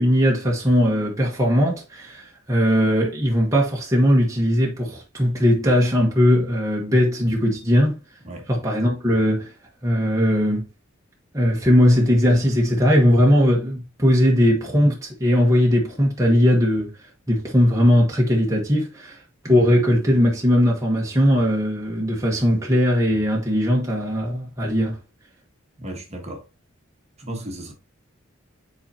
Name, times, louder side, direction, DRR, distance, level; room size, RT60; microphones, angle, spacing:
voice 1, 0.0-8.0 8.5-9.5 9.8-10.6 11.3-16.9 17.3-25.0, equal, 15° right, 1.2 m, -19 dB
voice 2, 25.8-26.4 27.2-27.7, right 1 dB, 30° right, 1.3 m, -34 dB
7.8 x 4.3 x 2.8 m
head